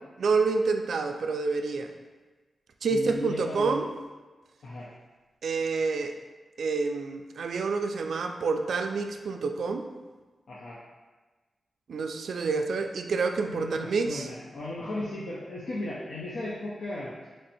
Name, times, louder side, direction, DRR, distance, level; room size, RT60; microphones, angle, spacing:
voice 1, 0.2-1.9 2.8-3.9 5.4-6.2 6.6-9.9 11.9-14.3, right 4 dB, 80° right, 5 dB, 0.3 m, -28 dB
voice 2, 2.9-3.8 4.6-4.9 10.5-10.8 13.5-17.1, left 2 dB, 70° left, -7 dB, 0.6 m, -36 dB
3.2 x 2.6 x 4.2 m, 1.3 s
cardioid pair, 70°, 0 cm